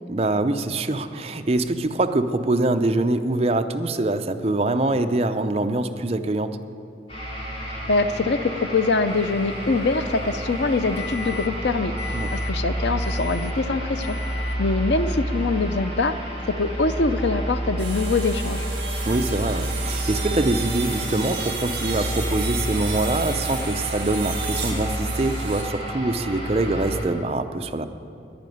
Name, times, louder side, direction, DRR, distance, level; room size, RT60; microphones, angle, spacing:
voice 1, 0.1-6.5 12.1-12.3 19.0-27.9, right 2 dB, 35° right, 7 dB, 0.6 m, -24 dB
sound 1, 7.1-27.0, right 1 dB, 30° left, 4.0 m, -29 dB
voice 2, 7.9-11.9 12.3-14.2 14.6-16.1 16.5-18.6, left 3 dB, 75° left, 11 dB, 0.6 m, -23 dB
Microwave oven, 9.1-11.6 12.0-12.5 13.0-13.6 14.0-14.6, left 5 dB, 15° left, 0.9 m, -39 dB
sound 2, 17.8-25.6, right 5 dB, 60° right, 3.3 m, -34 dB
11.0 x 10.5 x 9.2 m, 2.6 s
head